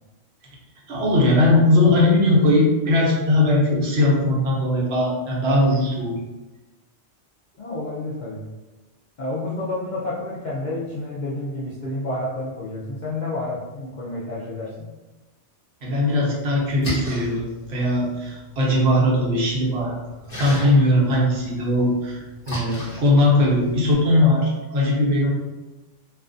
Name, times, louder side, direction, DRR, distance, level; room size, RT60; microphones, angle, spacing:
voice 1, 0.9-6.1 15.8-20.0 20.4-25.3, left 1 dB, 65° right, -3 dB, 0.9 m, -19 dB
voice 2, 7.6-8.4 9.2-14.9, left 2 dB, 65° left, -7 dB, 0.5 m, -30 dB
Splash splatter, 16.6-23.9, equal, 35° left, 1.0 m, -36 dB
2.4 x 2.3 x 2.4 m, 1.1 s
omnidirectional pair, 1.2 m